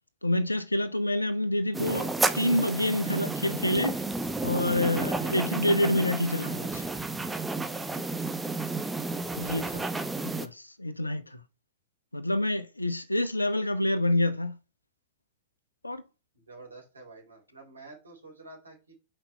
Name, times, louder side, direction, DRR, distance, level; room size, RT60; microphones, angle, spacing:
voice 1, 0.2-4.0 4.4-6.9 9.3-9.8 10.2-11.4 12.1-14.6 15.8-16.0, left 1 dB, 85° left, 1.0 m, -27 dB
sound 1, 1.7-10.5, right 3 dB, 10° right, 0.8 m, -31 dB
voice 2, 16.3-18.9, right 3 dB, 75° right, 3.7 m, -49 dB
5.9 x 5.1 x 5.6 m
figure-of-eight pair, 100°, 0 cm